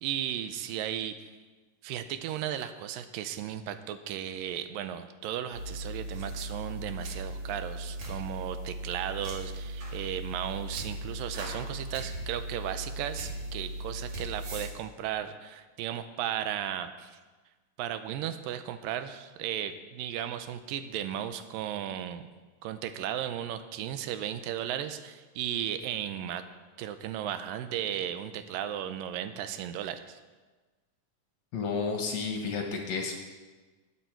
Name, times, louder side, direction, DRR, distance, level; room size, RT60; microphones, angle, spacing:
voice 1, 0.0-1.3 1.8-17.2 17.8-22.2 22.6-26.4 26.8-30.2, right 10 dB, 90° right, 10 dB, 2.3 m, -35 dB
sound 1, 5.5-14.7, right 1 dB, 50° right, 3.0 m, -38 dB
voice 2, 31.5-33.1, left 5 dB, 65° left, 2 dB, 2.0 m, -31 dB
20.0 x 7.0 x 4.5 m, 1.3 s
omnidirectional pair, 4.0 m